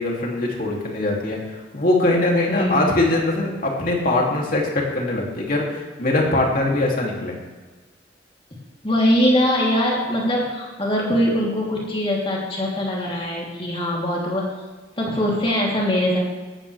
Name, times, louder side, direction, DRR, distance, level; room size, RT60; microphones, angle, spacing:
voice 1, 0.0-7.3, left 2 dB, 45° left, -2 dB, 2.9 m, -22 dB
voice 2, 2.5-2.8 8.8-14.5 15.0-16.2, equal, 30° left, -4 dB, 3.3 m, -22 dB
17.5 x 13.5 x 3.5 m, 1.3 s
head